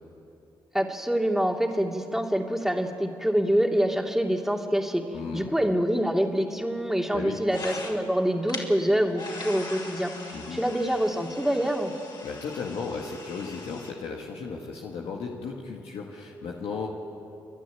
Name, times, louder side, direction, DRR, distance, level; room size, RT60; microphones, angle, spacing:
voice 1, 0.7-5.0 5.3-10.1 10.5-11.9, equal, 5° right, 2 dB, 2.7 m, -25 dB
voice 2, 5.1-5.5 7.1-7.4 10.3-10.6 12.2-16.9, left 5 dB, 75° left, -1 dB, 1.8 m, -35 dB
sound 1, 7.4-8.2 8.5-8.6 9.1-13.9, left 3 dB, 45° left, 4.7 m, -41 dB
30.0 x 11.5 x 9.4 m, 2.9 s
hypercardioid pair, 45°, 10 cm